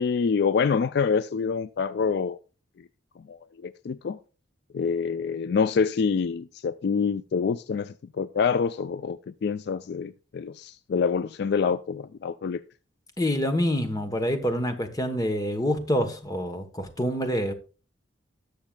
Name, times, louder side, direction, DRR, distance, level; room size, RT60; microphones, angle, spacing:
voice 1, 0.0-2.4 3.3-4.2 4.7-12.6, left 5 dB, 60° left, 0.3 m, -26 dB
voice 2, 13.2-17.5, equal, 20° left, 1.0 m, -26 dB
19.0 x 6.5 x 2.3 m
head